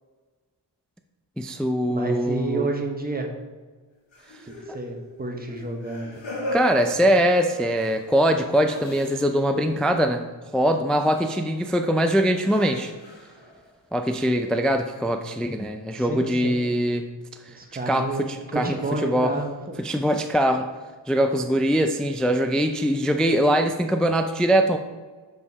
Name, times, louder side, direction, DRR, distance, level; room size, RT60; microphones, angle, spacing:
voice 1, 1.4-2.7 6.5-10.2 10.5-12.9 13.9-17.1 17.5-17.6 17.9-18.8 19.0-19.3 19.8-20.7 21.1-24.8, equal, ahead, 6 dB, 0.4 m, -22 dB
voice 2, 1.9-3.3 4.5-6.2 15.9-16.6 17.5-18.2 18.5-19.8, right 2 dB, 20° right, 2 dB, 1.1 m, -30 dB
sound 1, 4.1-9.6 9.8-10.1 11.1-11.3 11.9-12.0 12.4-13.7, equal, 80° left, 1.6 m, -37 dB
7.2 x 5.1 x 4.0 m, 1.4 s
wide cardioid pair, 75°, 45 cm